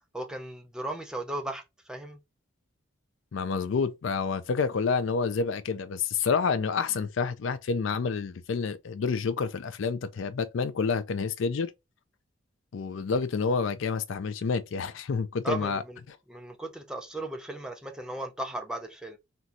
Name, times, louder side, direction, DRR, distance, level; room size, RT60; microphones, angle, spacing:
voice 1, 0.1-2.2 15.4-16.0 16.3-19.2, right 1 dB, 5° right, 0.4 m, -36 dB
voice 2, 3.3-11.7 12.7-15.8, left 5 dB, 70° left, 0.4 m, -28 dB
3.9 x 2.2 x 2.8 m
head